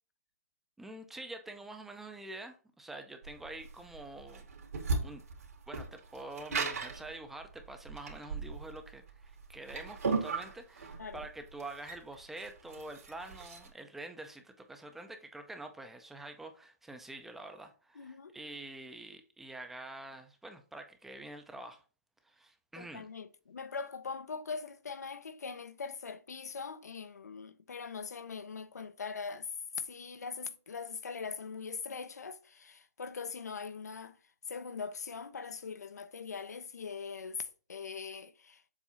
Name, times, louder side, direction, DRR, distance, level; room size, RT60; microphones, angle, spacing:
voice 1, 0.8-4.5 5.0-5.2 5.7-21.8 22.2-23.1, right 2 dB, 5° right, 0.5 m, -46 dB
sound 1, 3.2-13.7, right 4 dB, 70° right, 2.2 m, -37 dB
voice 2, 17.9-18.4 22.8-29.5 29.8-34.2 34.5-38.6, left 5 dB, 85° left, 0.7 m, -42 dB
7.2 x 2.7 x 5.5 m
hypercardioid pair, 160°, 9 cm